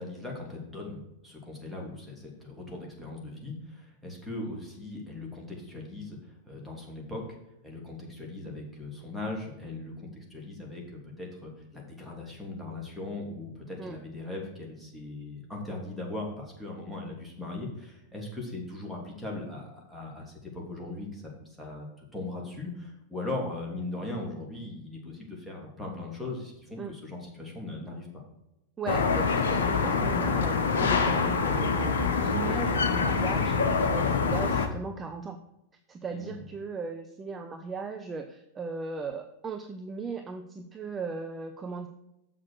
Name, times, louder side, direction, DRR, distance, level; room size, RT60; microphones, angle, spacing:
voice 1, 0.0-6.2 6.5-7.4 7.6-21.2 21.6-21.9 22.1-28.2 36.1-36.4, left 2 dB, ahead, -3 dB, 3.0 m, -39 dB
voice 2, 28.8-33.6 33.9-35.4 35.9-41.9, right 4 dB, 20° right, 7 dB, 0.7 m, -37 dB
sound 1, 28.9-34.7, left 5 dB, 65° left, 1.0 m, -25 dB
7.4 x 6.4 x 6.3 m, 0.90 s
figure-of-eight pair, 90°, 0 cm